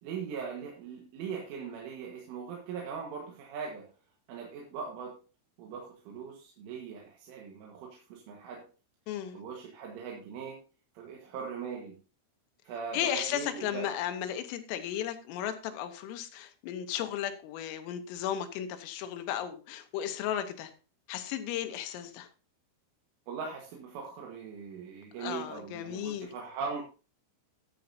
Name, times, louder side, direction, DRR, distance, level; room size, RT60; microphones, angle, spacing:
voice 1, 0.0-3.9 4.3-5.2 5.6-8.6 9.3-10.6 11.0-12.0 12.7-14.0 23.3-26.8, right 6 dB, 75° right, -1 dB, 4.0 m, -40 dB
voice 2, 9.1-9.4 12.9-20.7 21.1-22.3 25.2-26.3, left 10 dB, 90° left, 8 dB, 3.7 m, -35 dB
14.0 x 10.0 x 2.8 m, 0.34 s
omnidirectional pair, 5.8 m